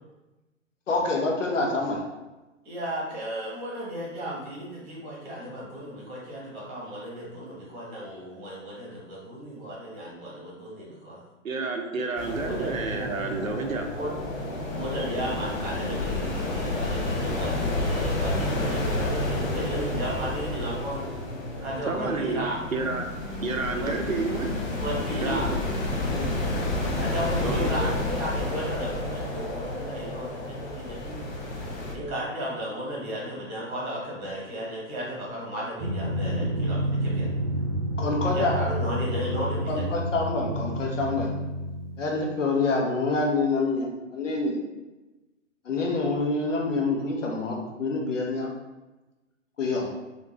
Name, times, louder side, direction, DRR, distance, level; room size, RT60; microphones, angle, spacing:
voice 1, 0.9-2.0 38.0-38.5 39.7-41.3 42.0-44.6 45.6-48.5 49.6-49.9, left 3 dB, 65° left, 0 dB, 0.9 m, -26 dB
voice 2, 2.6-11.2 12.4-13.1 13.9-14.1 14.7-21.1 21.6-22.6 23.8-24.1 24.7-25.7 26.0-26.3 26.9-31.3 31.9-37.3 38.2-39.8, equal, 20° right, -5 dB, 1.0 m, -34 dB
voice 3, 11.4-13.9 21.9-23.0 23.4-24.5 25.2-25.5 26.1-26.2 27.4-27.9, right 3 dB, 85° right, 4 dB, 0.6 m, -30 dB
sound 1, 12.2-31.9, left 2 dB, 35° left, 0.7 m, -30 dB
Drum, 35.8-42.3, equal, 45° right, 0.7 m, -29 dB
3.5 x 2.5 x 2.9 m, 1.1 s
figure-of-eight pair, 120°, 39 cm